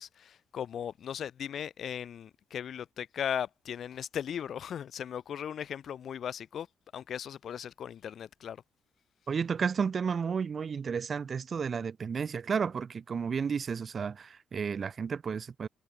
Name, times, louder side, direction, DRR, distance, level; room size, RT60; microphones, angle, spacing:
voice 1, 0.0-6.7 6.9-8.6, left 9 dB, 60° left, 7.2 m, -37 dB
voice 2, 9.3-15.7, right 6 dB, 45° right, 1.6 m, -32 dB
cardioid pair, 90°, 0 cm